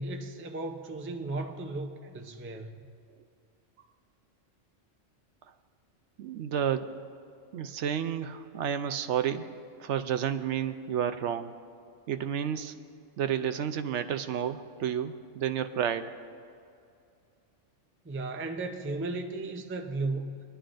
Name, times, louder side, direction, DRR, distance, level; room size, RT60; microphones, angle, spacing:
voice 1, 0.0-2.8 18.0-20.3, right 2 dB, 20° right, 5 dB, 0.3 m, -35 dB
voice 2, 6.2-7.0 7.5-9.5 9.8-11.5 12.1-12.7 13.2-16.2, right 9 dB, 75° right, 10 dB, 0.9 m, -31 dB
21.0 x 11.0 x 2.5 m, 2.5 s
omnidirectional pair, 1.3 m